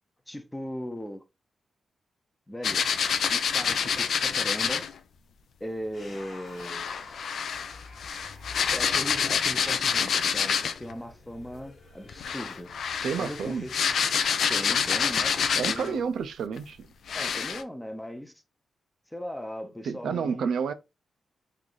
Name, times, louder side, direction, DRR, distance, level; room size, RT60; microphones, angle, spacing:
voice 1, 0.3-1.2 2.5-2.9 3.3-4.9 5.6-6.9 8.7-12.7 13.2-13.7 14.5-16.1 17.1-18.3 19.1-20.5, equal, 5° left, 0.5 m, -38 dB
sound 1, 2.6-4.9 6.6-10.9 12.1-16.0 16.6-16.7 17.1-17.6, left 7 dB, 70° left, 0.4 m, -27 dB
sound 2, 5.9-13.8, left 3 dB, 50° left, 0.9 m, -49 dB
voice 2, 13.0-13.6 15.6-16.9 19.8-20.7, right 6 dB, 85° right, 0.4 m, -30 dB
3.1 x 2.6 x 3.8 m
wide cardioid pair, 140°, 0 cm